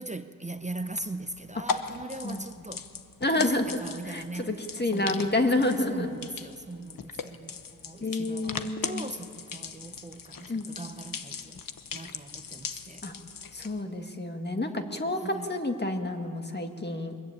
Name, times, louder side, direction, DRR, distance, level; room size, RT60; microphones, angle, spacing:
voice 1, 0.0-2.9 3.3-11.6 11.9-13.1 15.2-15.6, right 2 dB, 20° right, 9 dB, 0.8 m, -40 dB
sound 1, 0.6-13.8, left 5 dB, 70° left, 1.1 m, -39 dB
voice 2, 3.2-3.7 4.1-6.1 8.0-9.0 10.5-10.7 13.0-13.1 13.5-17.1, left 2 dB, 30° left, 5 dB, 1.9 m, -29 dB
22.5 x 21.5 x 8.9 m, 2.5 s
wide cardioid pair, 120°, 35 cm